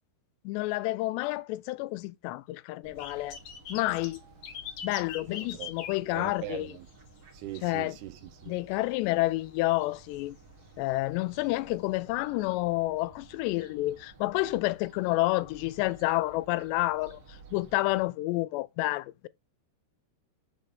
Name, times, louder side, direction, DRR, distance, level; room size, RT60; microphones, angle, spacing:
voice 1, 0.5-3.4 3.7-4.2 4.8-6.7 7.6-8.0 8.5-10.4 10.8-17.2 17.5-19.3, left 19 dB, 90° left, 2.8 m, -29 dB
Fowl, 2.8-18.0, right 3 dB, 65° right, 1.5 m, -55 dB
sound 1, 3.0-7.2 7.4-7.8 8.2-8.3 9.6-9.7 10.1-10.2 11.3-11.4 12.1-12.2, left 8 dB, 60° left, 2.1 m, -42 dB
voice 2, 5.3-5.7 6.1-6.9 7.3-8.6, right 12 dB, 80° right, 2.8 m, -41 dB
6.7 x 5.4 x 5.3 m
omnidirectional pair, 4.8 m